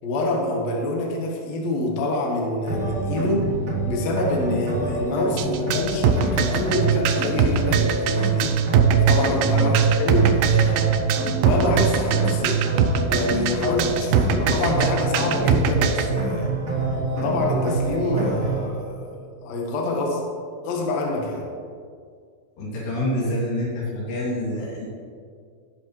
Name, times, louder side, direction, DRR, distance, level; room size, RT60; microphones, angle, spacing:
voice 1, 0.0-3.5 3.9-8.5 9.1-11.0 11.4-12.7 13.1-16.5 17.2-20.2 20.6-21.5, left 2 dB, 60° left, -1 dB, 1.8 m, -26 dB
sound 1, 2.7-18.7, right 5 dB, 65° right, 0.8 m, -24 dB
sound 2, 5.4-16.1, right 7 dB, 85° right, 2.2 m, -22 dB
voice 2, 9.5-9.8 13.9-14.4 22.6-24.9, left 1 dB, 80° left, -6 dB, 4.8 m, -27 dB
17.5 x 6.2 x 3.2 m, 2.1 s
omnidirectional pair, 4.8 m